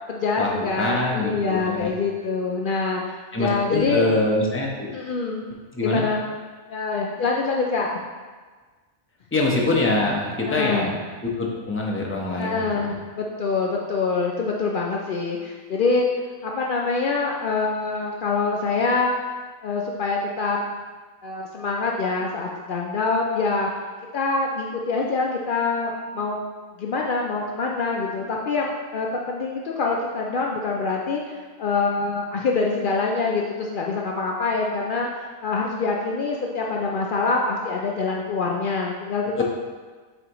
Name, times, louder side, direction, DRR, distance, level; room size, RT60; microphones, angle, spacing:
voice 1, 0.1-4.1 4.9-5.4 5.8-6.2 6.7-8.0 10.4-10.9 12.4-16.1 16.4-19.1 19.6-20.6 21.2-23.7 24.1-26.4 26.8-39.4, left 4 dB, 85° left, -1 dB, 0.4 m, -25 dB
voice 2, 0.8-1.9 3.3-4.9 5.7-6.0 9.3-12.7 39.4-39.5, left 2 dB, 15° left, -2 dB, 0.6 m, -24 dB
7.9 x 4.2 x 3.0 m, 1.4 s
omnidirectional pair, 1.5 m